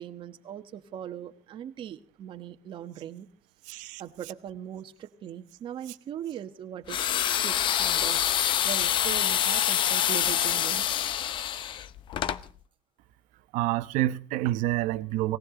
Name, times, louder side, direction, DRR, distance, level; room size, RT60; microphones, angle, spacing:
voice 1, 0.0-3.3 4.0-8.2 8.6-10.8, right 10 dB, 40° right, 1.3 m, -40 dB
voice 2, 3.7-4.0 13.5-15.4, right 15 dB, 75° right, 1.0 m, -28 dB
sound 1, 6.9-12.4, left 10 dB, 40° left, 0.7 m, -26 dB
19.0 x 18.0 x 3.8 m
cardioid pair, 160°, 13 cm